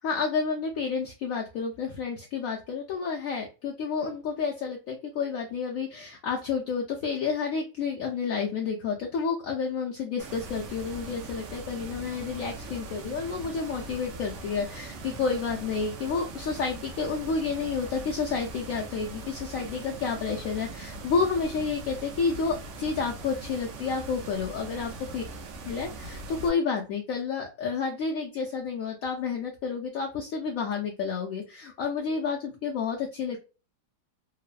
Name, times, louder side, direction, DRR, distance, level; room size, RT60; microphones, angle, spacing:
voice 1, 0.0-25.2 25.7-33.4, left 5 dB, 75° left, -1 dB, 0.8 m, -30 dB
sound 1, 10.2-26.5, right 2 dB, 85° right, 0.6 m, -41 dB
3.0 x 2.0 x 2.4 m, 0.32 s
omnidirectional pair, 1.9 m